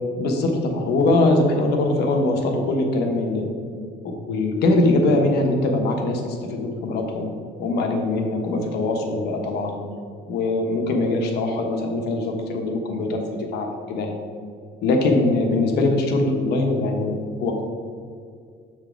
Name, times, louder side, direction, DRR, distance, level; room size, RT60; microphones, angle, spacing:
voice 1, 0.2-3.5 4.0-7.3 7.6-9.9 10.3-14.2 14.8-17.6, left 2 dB, 75° left, 3 dB, 1.2 m, -22 dB
7.0 x 4.8 x 4.5 m, 2.2 s
cardioid pair, 110°, 17 cm